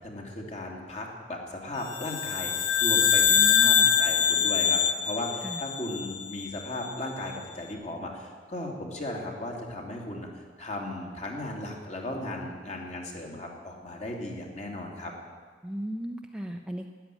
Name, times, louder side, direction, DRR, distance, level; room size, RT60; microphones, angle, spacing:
voice 1, 0.0-10.3 10.6-15.1, left 1 dB, 40° left, 0 dB, 2.7 m, -36 dB
sound 1, 1.9-6.4, left 8 dB, 80° left, 1.1 m, -24 dB
voice 2, 3.3-3.9 5.4-5.6 15.6-16.9, equal, 5° right, 3 dB, 0.7 m, -36 dB
13.5 x 10.5 x 9.2 m, 1.5 s
head